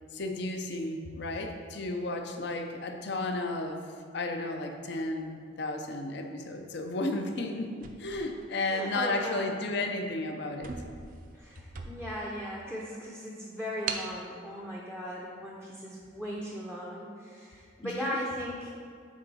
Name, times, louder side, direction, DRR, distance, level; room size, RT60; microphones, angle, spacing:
voice 1, 0.1-3.8 4.1-10.7 17.8-18.3, left 2 dB, 55° left, 4 dB, 0.6 m, -33 dB
sound 1, 7.7-9.1 9.7-9.9 10.2-10.3 10.6-12.3 12.8-12.9 13.9-14.2, right 5 dB, 40° right, 0.5 m, -40 dB
voice 2, 8.6-9.5 11.3-18.7, equal, 5° left, -3 dB, 0.6 m, -38 dB
9.8 x 3.9 x 4.1 m, 2.3 s
head